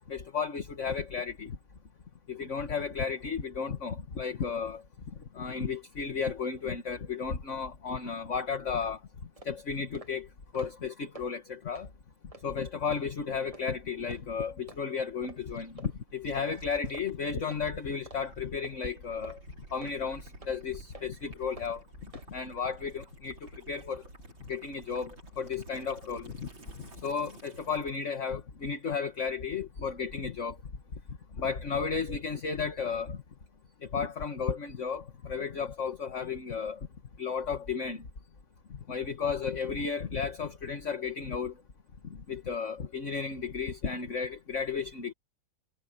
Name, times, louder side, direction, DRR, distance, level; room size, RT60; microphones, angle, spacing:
voice 1, 0.1-1.6 2.3-4.8 5.3-9.0 9.5-10.3 10.5-11.9 12.4-19.4 19.7-21.8 22.3-24.0 24.5-26.5 26.8-30.6 31.4-33.2 33.8-36.8 37.2-38.0 38.7-41.5 42.1-45.1, left 5 dB, 40° left, 1.9 m, -33 dB
sound 1, 8.8-8.9 9.4-9.5 9.9-10.1 10.4-10.8 11.1-11.3 11.7-11.9 12.3-12.4 12.9-13.0 13.5-13.7 14.1-14.2 14.7-14.8 15.2-15.4 15.8-15.9 16.4-16.5 16.9-17.1 17.5-17.6 18.1-18.2 18.6-18.8 19.2-19.4 19.8-20.0 20.4-20.5 20.9-21.1 21.6-21.7 22.1-22.3, right 2 dB, 20° right, 1.7 m, -49 dB
Gurgling / Liquid, 15.5-28.0, right 2 dB, 70° right, 7.3 m, -52 dB
omnidirectional pair, 2.2 m